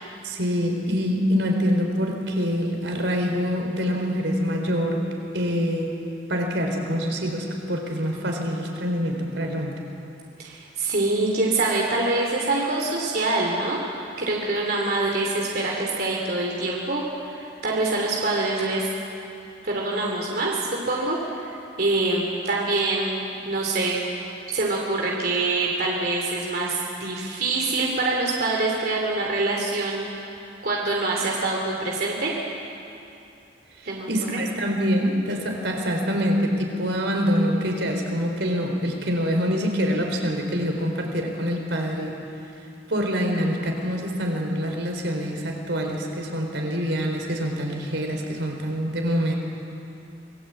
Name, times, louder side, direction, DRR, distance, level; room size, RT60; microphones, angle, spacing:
voice 1, 0.2-5.1 5.3-5.9 6.3-9.8 34.1-42.2 42.9-49.3, equal, 80° right, 2 dB, 4.2 m, -25 dB
voice 2, 10.4-13.8 14.2-18.9 19.6-24.0 24.5-30.1 30.6-32.3 33.8-34.4, right 2 dB, 55° right, -2 dB, 3.1 m, -25 dB
26.5 x 20.0 x 8.5 m, 2.7 s
head